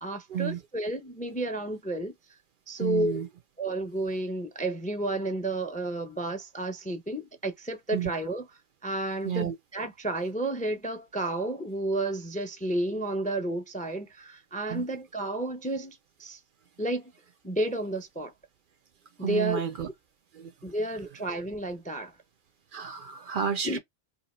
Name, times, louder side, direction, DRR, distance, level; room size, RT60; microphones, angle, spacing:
voice 1, 0.0-2.4 2.7-3.2 3.6-8.5 8.8-16.4 16.8-17.1 17.4-18.3 19.2-19.6 20.6-22.1 23.6-23.8, right 1 dB, 10° left, 0.4 m, -31 dB
voice 2, 2.8-3.3 7.9-8.1 9.2-9.5 14.7-14.8 19.2-19.9 20.3-20.5 21.0-21.1 22.7-23.8, right 8 dB, 60° right, 0.6 m, -31 dB
2.8 x 2.7 x 4.2 m
omnidirectional pair, 1.1 m